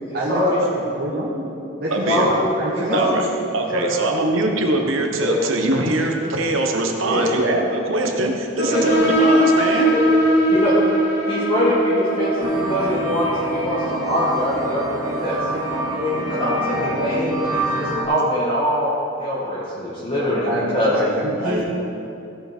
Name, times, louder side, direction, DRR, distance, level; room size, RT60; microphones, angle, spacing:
voice 1, 0.1-0.6 1.9-3.3 3.6-4.3 5.2-5.4 7.0-7.4 8.6-8.9 9.8-10.1 10.5-10.7 11.3-15.6 16.0-18.9 19.2-21.0 21.4-21.6, left 1 dB, 30° left, -9 dB, 1.8 m, -23 dB
voice 2, 0.7-1.4 1.8-2.3 2.6-3.2 20.2-21.6, right 1 dB, 50° right, -7 dB, 1.4 m, -26 dB
voice 3, 1.9-2.2 2.9-3.2 3.5-9.9, right 2 dB, 70° right, 2 dB, 1.2 m, -22 dB
sound 1, 8.6-15.9, right 1 dB, 50° left, 2.3 m, -21 dB
sound 2, 12.4-18.0, right 1 dB, 15° right, 1.6 m, -26 dB
16.0 x 5.9 x 4.5 m, 2.7 s
head